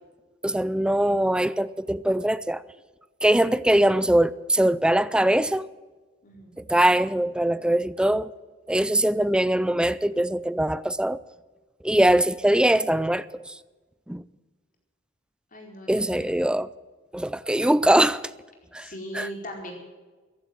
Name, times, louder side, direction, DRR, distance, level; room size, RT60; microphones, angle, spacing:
voice 1, 0.4-2.6 3.2-5.7 6.6-8.3 8.7-11.2 11.8-13.5 14.1-14.2 15.9-16.7 17.1-18.2 18.7-18.9 19.1-19.3, right 1 dB, 5° right, 0.4 m, -22 dB
voice 2, 6.2-6.6 15.5-16.3 18.8-19.7, equal, 45° left, 4.6 m, -39 dB
15.5 x 11.5 x 7.9 m
head